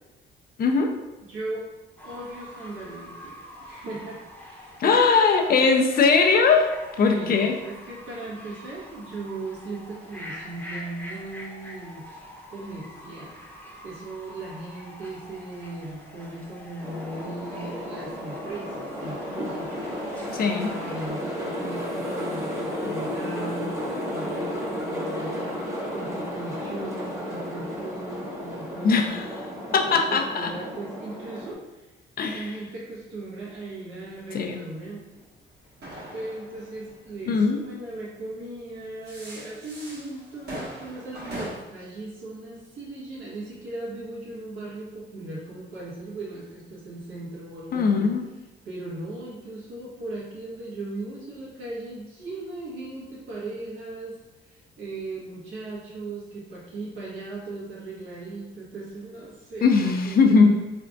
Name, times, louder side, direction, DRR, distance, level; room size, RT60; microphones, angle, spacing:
voice 1, 0.6-0.9 4.8-6.7 7.0-7.5 20.3-20.7 28.8-29.2 29.7-30.5 32.2-32.4 34.3-34.6 37.3-37.6 47.7-48.2 59.6-60.5, left 4 dB, 50° left, 4 dB, 0.5 m, -20 dB
voice 2, 1.3-1.7 2.0-5.0 7.0-13.4 13.8-29.5 30.1-31.9 32.3-35.2 36.1-48.1 48.6-54.2 54.4-60.5, right 2 dB, 80° right, -6 dB, 1.4 m, -38 dB
Fowl / Bird, 2.0-21.1, equal, 10° left, 0.8 m, -45 dB
sound 1, 16.8-31.5, equal, 15° right, 1.0 m, -33 dB
sound 2, 35.1-37.9 38.8-41.5, right 1 dB, 55° right, 1.5 m, -40 dB
3.6 x 3.4 x 2.5 m, 1.1 s
cardioid pair, 90°, 20 cm